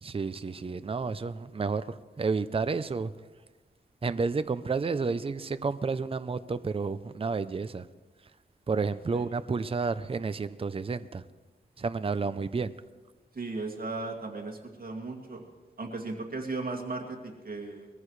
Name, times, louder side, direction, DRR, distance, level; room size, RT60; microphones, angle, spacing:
voice 1, 0.0-3.1 4.0-7.9 8.7-11.2 11.8-12.7, right 4 dB, 30° right, 12 dB, 0.5 m, -31 dB
voice 2, 13.3-15.4 15.8-17.9, right 3 dB, 55° right, 1 dB, 2.4 m, -36 dB
22.0 x 14.5 x 3.2 m, 1.3 s
wide cardioid pair, 85°, 18 cm